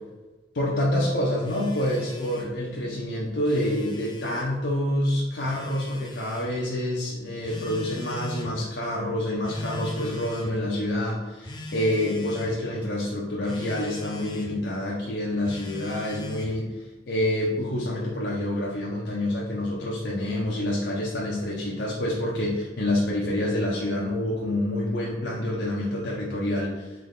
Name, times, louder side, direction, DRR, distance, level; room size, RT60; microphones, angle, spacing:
voice 1, 0.5-26.9, left 1 dB, 75° left, -4 dB, 0.7 m, -27 dB
Telephone, 1.4-2.5 3.3-4.5 5.4-6.5 7.4-8.5 9.4-10.6 11.4-12.5 13.4-14.5 15.4-16.6, left 2 dB, 25° left, 0.5 m, -40 dB
3.9 x 3.2 x 3.5 m, 1.2 s
head